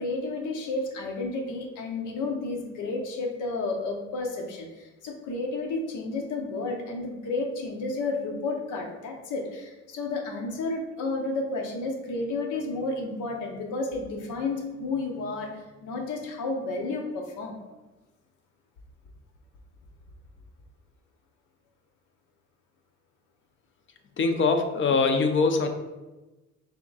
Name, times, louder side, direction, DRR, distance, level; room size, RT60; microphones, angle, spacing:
voice 1, 0.0-17.6, left 3 dB, 80° left, 2 dB, 0.8 m, -31 dB
voice 2, 24.2-25.7, left 4 dB, 40° left, 5 dB, 0.6 m, -22 dB
3.6 x 2.8 x 4.0 m, 1.1 s
cardioid pair, 90°, 30 cm